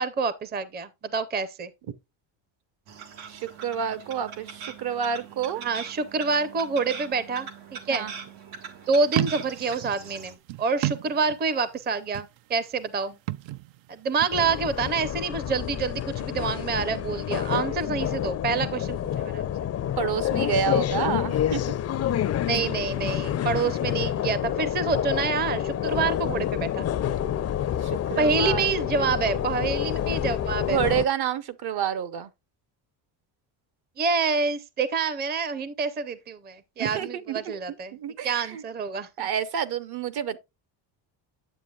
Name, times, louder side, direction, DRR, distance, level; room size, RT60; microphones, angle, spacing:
voice 1, 0.0-1.7 5.6-8.1 8.9-13.2 13.9-19.4 22.5-26.9 28.2-30.9 34.0-38.0 38.2-39.3, right 4 dB, 20° right, 0.6 m, -27 dB
sound 1, 2.9-10.4, right 6 dB, 90° right, 1.8 m, -42 dB
voice 2, 3.3-5.6 7.9-8.1 20.0-21.6 23.6-23.7 27.8-28.8 29.0-29.4 30.7-32.3 36.8-37.6 37.9-38.6 39.2-40.4, right 8 dB, 55° right, 0.9 m, -29 dB
sound 2, 9.0-11.7 12.0-12.6 13.1-14.4, right 16 dB, 70° right, 0.6 m, -32 dB
sound 3, 14.3-31.0, left 10 dB, 35° left, 0.5 m, -28 dB
9.1 x 7.5 x 2.3 m
cardioid pair, 135°, 47 cm